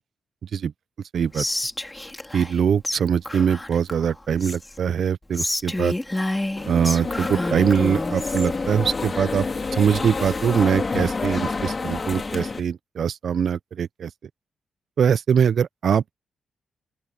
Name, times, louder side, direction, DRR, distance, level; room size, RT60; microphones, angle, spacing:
voice 1, 0.4-0.7 1.1-1.5 2.3-6.0 6.7-9.5 9.7-14.1 15.0-16.1, right 7 dB, 60° right, 0.4 m, -22 dB
Whispering, 1.3-2.6 2.8-3.0 3.2-4.8 5.3-8.5, left 1 dB, 10° left, 2.5 m, -29 dB
sound 1, 6.6-12.6, left 4 dB, 30° left, 2.6 m, -28 dB
open air
wide cardioid pair, 135°, 0 cm